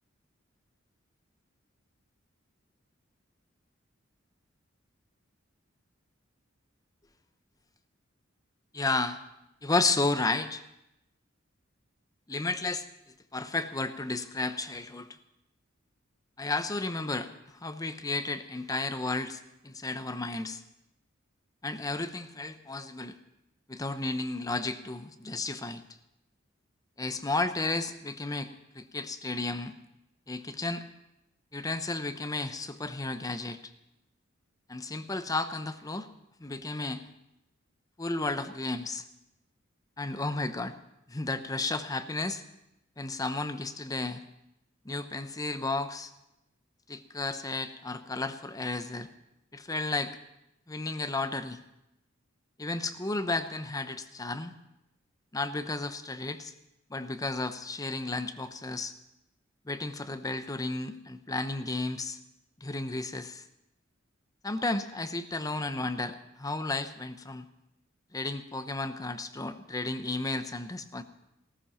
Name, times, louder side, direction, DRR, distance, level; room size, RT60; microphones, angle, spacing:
voice 1, 8.7-9.2 9.6-10.6 12.3-12.9 13.3-15.1 16.4-17.3 17.6-20.6 21.6-23.2 23.7-25.8 27.0-29.7 30.3-30.8 31.5-33.6 34.7-36.1 36.4-37.0 38.0-39.0 40.0-40.7 41.1-42.4 43.0-44.2 44.8-46.1 46.9-49.1 49.5-50.1 50.7-51.6 52.6-54.5 55.3-56.5 56.9-58.9 59.7-62.2 62.6-63.4 64.4-67.5 68.1-71.0, left 2 dB, 20° left, 9 dB, 0.8 m, -33 dB
15.5 x 14.0 x 5.7 m, 0.88 s
head